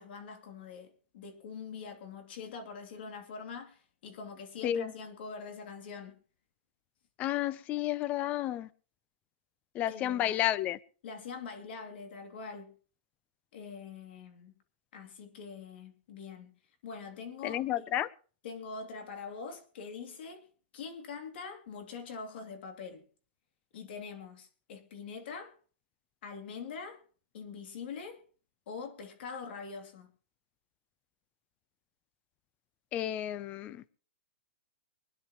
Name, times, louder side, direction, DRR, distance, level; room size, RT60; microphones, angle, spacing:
voice 1, 0.0-6.2 9.9-10.4 11.0-12.8 13.5-14.6 14.9-16.5 16.8-17.9 18.4-20.5 20.7-23.0 23.7-25.5 26.2-27.0 27.3-28.2 28.7-30.1, left 5 dB, 55° left, 2.8 m, -44 dB
voice 2, 7.2-8.7 9.7-10.8 17.4-18.1 32.9-33.8, left 12 dB, 25° left, 0.5 m, -31 dB
24.5 x 10.5 x 3.0 m
hypercardioid pair, 155°, 6 cm